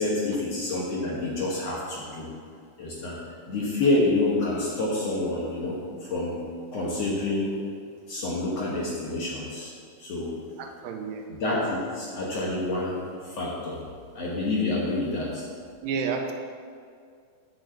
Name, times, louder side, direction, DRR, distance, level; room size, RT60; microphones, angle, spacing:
voice 1, 0.0-2.3 2.8-3.2 3.5-6.4 6.7-7.6 8.1-9.7 10.0-10.3 11.4-13.8 14.2-15.5, left 2 dB, 60° left, -5 dB, 1.9 m, -28 dB
voice 2, 10.6-11.3 15.8-16.3, right 5 dB, 80° right, 3 dB, 2.4 m, -31 dB
6.9 x 6.3 x 7.7 m, 2.2 s
omnidirectional pair, 4.1 m